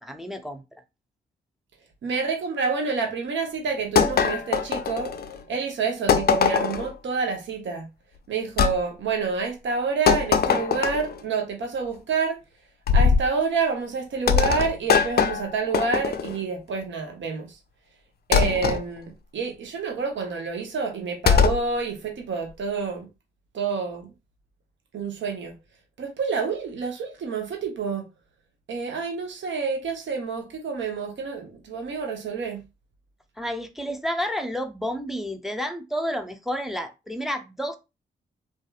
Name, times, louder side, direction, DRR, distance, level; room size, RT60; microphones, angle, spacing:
voice 1, 0.0-0.6 33.4-37.8, equal, ahead, 0.5 m, -30 dB
voice 2, 2.0-5.1 5.5-7.9 8.3-12.4 12.9-17.5 18.3-23.1 23.5-24.1 24.9-25.5 26.0-28.1 28.7-32.6, right 5 dB, 65° right, 0.8 m, -28 dB
sound 1, 4.0-5.4 6.1-6.9 8.6-8.8 10.1-11.2 12.9-13.3 14.3-16.4 18.3-18.8 21.3-21.6, left 6 dB, 50° left, 0.4 m, -21 dB
2.6 x 2.3 x 2.3 m
supercardioid pair, 40°, 21 cm